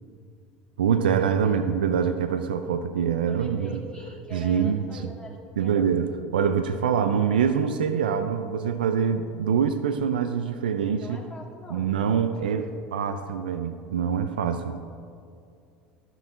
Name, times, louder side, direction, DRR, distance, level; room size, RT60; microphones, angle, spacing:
voice 1, 0.8-3.7 4.3-5.1 5.6-11.2 11.7-14.8, right 7 dB, 85° right, 9 dB, 0.4 m, -25 dB
voice 2, 3.3-5.9 11.0-11.9 12.7-13.3, equal, 20° left, -2 dB, 2.1 m, -44 dB
12.5 x 6.1 x 4.4 m, 2.4 s
hypercardioid pair, 80°, 5 cm